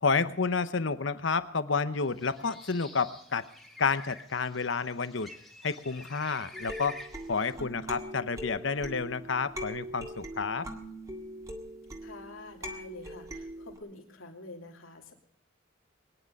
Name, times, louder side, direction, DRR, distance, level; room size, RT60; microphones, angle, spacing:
voice 1, 0.0-3.4 3.8-5.3 5.6-7.0 7.3-10.7, left 4 dB, 65° left, 13 dB, 0.9 m, -30 dB
Bird, 2.0-7.6, left 1 dB, ahead, 1.9 m, -48 dB
sound 1, 6.5-13.8, equal, 15° right, 1.8 m, -42 dB
voice 2, 12.0-15.1, left 2 dB, 90° left, 1 dB, 2.9 m, -47 dB
22.5 x 10.0 x 5.3 m, 0.66 s
head